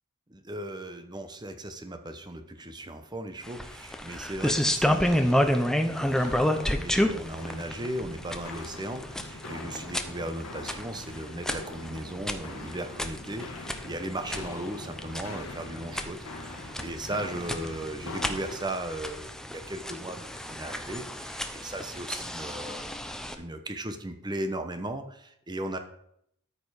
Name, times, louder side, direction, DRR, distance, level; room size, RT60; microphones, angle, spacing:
voice 1, 0.3-25.8, right 1 dB, 20° right, 8 dB, 0.9 m, -37 dB
sound 1, 3.4-23.3, equal, 5° left, 0.6 m, -31 dB
Walk footsteps, 4.8-18.6, left 2 dB, 80° left, 1.5 m, -43 dB
13.0 x 5.3 x 4.8 m, 0.73 s
head